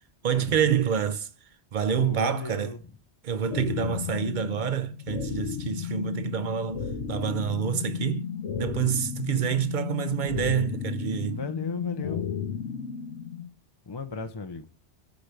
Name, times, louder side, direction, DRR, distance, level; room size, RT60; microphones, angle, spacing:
voice 1, 0.2-1.3 1.7-2.7 3.2-8.3 8.6-11.4, right 8 dB, 50° right, 0.7 m, -27 dB
voice 2, 1.9-2.8 11.3-12.3 13.9-14.7, left 4 dB, 35° left, 0.4 m, -35 dB
sound 1, 3.5-13.5, left 7 dB, 85° left, 1.2 m, -34 dB
14.0 x 5.1 x 3.3 m
omnidirectional pair, 1.2 m